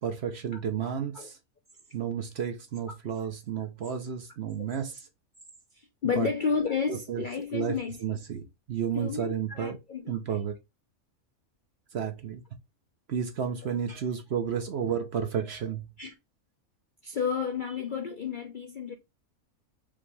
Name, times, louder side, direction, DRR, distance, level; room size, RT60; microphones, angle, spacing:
voice 1, 0.0-1.4 1.9-5.0 6.2-6.3 6.9-7.2 7.5-9.8 10.1-10.6 11.9-12.4 13.1-15.9, right 8 dB, 55° right, 0.9 m, -32 dB
voice 2, 5.8-8.2 8.9-10.5 13.6-14.0 16.0-16.1 17.0-18.9, left 5 dB, 55° left, 0.6 m, -32 dB
5.2 x 2.9 x 3.3 m
omnidirectional pair, 1.5 m